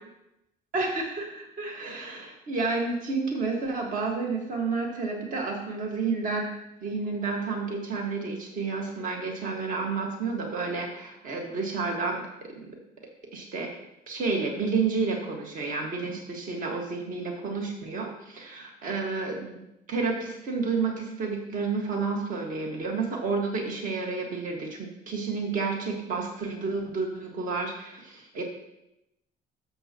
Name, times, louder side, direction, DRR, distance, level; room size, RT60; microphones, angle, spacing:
voice 1, 0.7-6.5 6.8-12.8 13.3-13.7 14.1-19.6 19.9-28.4, right 4 dB, 50° right, 0 dB, 1.7 m, -30 dB
12.0 x 7.3 x 3.0 m, 0.86 s
cardioid pair, 110°, 17 cm